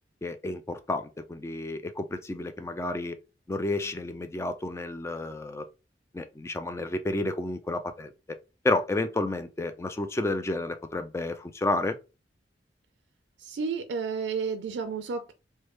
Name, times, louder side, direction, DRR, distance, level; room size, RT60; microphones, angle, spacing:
voice 1, 0.2-3.2 3.5-5.7 6.1-8.1 8.6-12.0, left 2 dB, 15° left, 0.3 m, -31 dB
voice 2, 13.4-15.3, right 5 dB, 75° right, 0.4 m, -31 dB
3.2 x 2.2 x 3.1 m
head